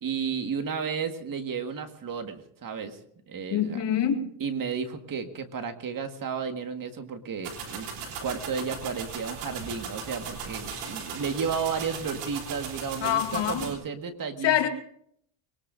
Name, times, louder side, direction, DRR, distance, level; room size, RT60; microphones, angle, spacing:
voice 1, 0.0-3.0 3.3-3.8 4.4-7.9 8.2-14.7, right 6 dB, 40° right, 7 dB, 1.8 m, -33 dB
voice 2, 3.5-4.3 13.0-13.7 14.4-14.7, left 10 dB, 60° left, 4 dB, 2.3 m, -25 dB
sound 1, 7.4-13.7, right 5 dB, 85° right, 3.8 m, -38 dB
22.5 x 20.0 x 2.7 m, 0.67 s
cardioid pair, 105°, 50 cm